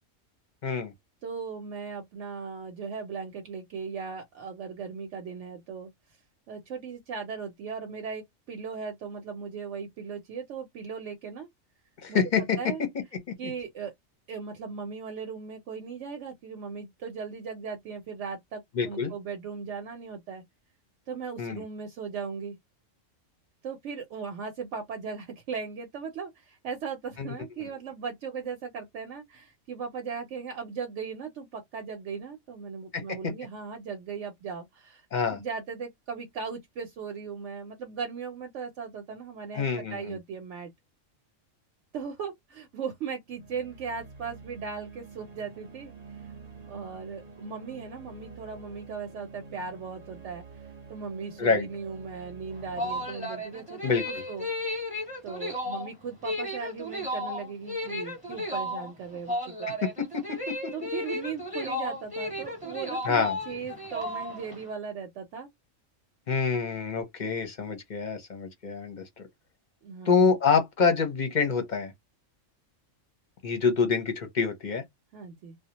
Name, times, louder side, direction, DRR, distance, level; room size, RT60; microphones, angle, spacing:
voice 1, 0.6-0.9 12.0-12.6 13.3-13.5 18.8-19.1 21.4-21.6 27.2-27.3 27.6-27.7 32.9-33.3 35.1-35.4 39.5-40.1 51.4-51.6 53.8-54.2 59.8-60.7 63.0-63.4 66.3-69.3 70.1-71.9 73.4-74.8, left 5 dB, 45° left, 0.7 m, -27 dB
voice 2, 1.2-5.9 6.5-11.5 12.1-12.2 12.6-12.8 13.4-13.9 14.3-20.4 21.1-22.6 23.6-35.1 35.3-40.7 41.9-45.9 46.7-54.5 55.2-59.7 60.7-65.5 69.8-70.3 75.1-75.6, right 6 dB, 70° right, 0.9 m, -38 dB
sound 1, 43.3-54.8, right 4 dB, 35° right, 0.8 m, -48 dB
sound 2, 52.5-64.6, left 1 dB, 5° right, 0.9 m, -34 dB
2.3 x 2.1 x 2.8 m
omnidirectional pair, 1.4 m